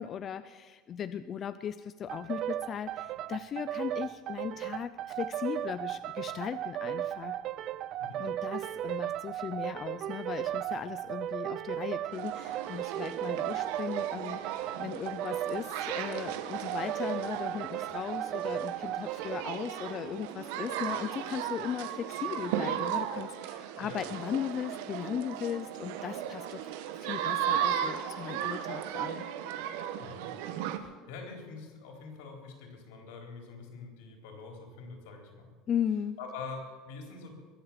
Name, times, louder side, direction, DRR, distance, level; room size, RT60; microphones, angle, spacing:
voice 1, 0.0-7.4 8.2-29.3 35.7-36.2, left 8 dB, 25° left, 12 dB, 0.4 m, -37 dB
sound 1, 2.1-19.5, right 12 dB, 40° right, 0.4 m, -36 dB
sound 2, 12.1-30.8, right 10 dB, 70° right, 1.2 m, -36 dB
voice 2, 30.7-35.5 36.2-37.3, left 4 dB, 80° left, 2 dB, 3.9 m, -45 dB
22.0 x 8.0 x 7.4 m, 1.5 s
cardioid pair, 175°, 0 cm